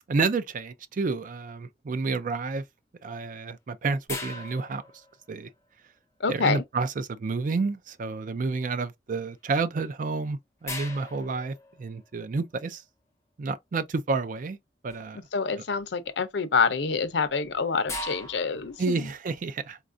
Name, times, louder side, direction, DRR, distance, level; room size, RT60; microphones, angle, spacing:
voice 1, 0.1-2.6 3.0-4.8 5.3-5.5 6.3-12.8 13.4-14.6 14.8-15.2 18.8-19.8, right 4 dB, 45° right, 0.4 m, -30 dB
sound 1, 4.1-5.6 9.8-9.9 10.7-12.3 14.9-15.3 15.7-16.1 17.0-19.0, left 2 dB, 15° left, 0.6 m, -40 dB
voice 2, 6.2-6.6 15.1-19.1, left 5 dB, 70° left, 0.5 m, -27 dB
4.0 x 2.4 x 2.5 m
head